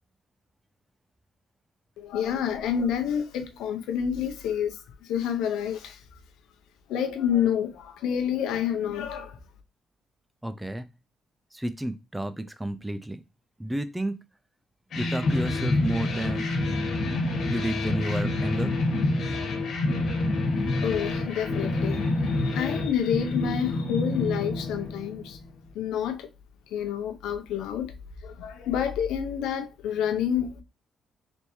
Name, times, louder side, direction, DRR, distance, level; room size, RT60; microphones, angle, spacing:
voice 1, 2.0-6.0 6.9-9.4 20.8-25.4 25.7-26.3 26.7-27.9 28.2-30.5, left 8 dB, 90° left, 0.7 m, -28 dB
voice 2, 10.4-10.9 11.5-13.2 13.6-14.2 14.9-16.5 17.5-18.7, right 1 dB, 10° right, 0.4 m, -31 dB
sound 1, 14.9-25.4, left 2 dB, 70° left, 1.3 m, -27 dB
4.1 x 3.5 x 3.1 m
cardioid pair, 90°, 0 cm